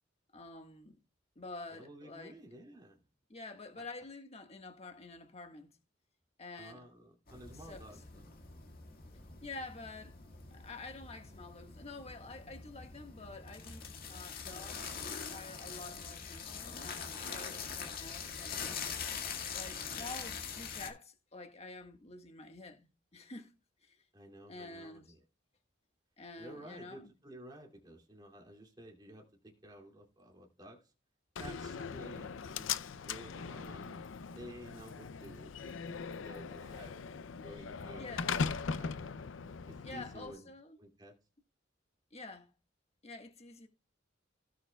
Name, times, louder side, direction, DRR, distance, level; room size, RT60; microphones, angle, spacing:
voice 1, 0.3-1.0 1.3-2.4 3.3-5.7 6.4-6.8 7.5-8.2 9.4-10.1 10.5-18.6 19.5-23.5 23.8-24.0 24.5-25.1 26.2-27.1 38.0-38.4 39.8-40.8 42.1-42.5 43.0-43.7, left 3 dB, 35° left, 1.6 m, -48 dB
voice 2, 1.7-3.0 3.8-3.9 6.6-8.4 24.1-25.2 26.4-30.8 31.4-32.7 33.1-34.1 34.3-36.9 37.4-39.1 39.7-40.5 40.8-41.2, right 1 dB, 20° right, 2.5 m, -52 dB
sound 1, 7.3-20.9, left 6 dB, 50° left, 1.9 m, -43 dB
Slam, 31.4-40.4, left 5 dB, 85° left, 0.5 m, -40 dB
17.0 x 6.6 x 2.3 m
head